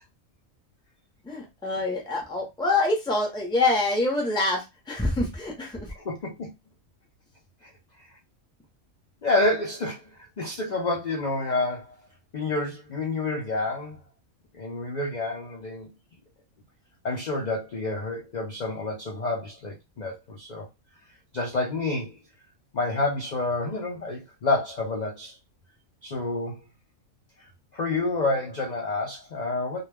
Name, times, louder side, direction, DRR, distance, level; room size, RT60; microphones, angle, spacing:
voice 1, 1.2-5.9, left 2 dB, 5° left, 0.5 m, -26 dB
voice 2, 6.0-6.5 9.2-11.9 12.3-14.0 14.5-15.9 17.0-20.7 21.3-22.1 22.7-25.3 26.0-26.6 27.7-29.9, left 2 dB, 60° left, 0.4 m, -28 dB
2.3 x 2.2 x 3.2 m
omnidirectional pair, 1.4 m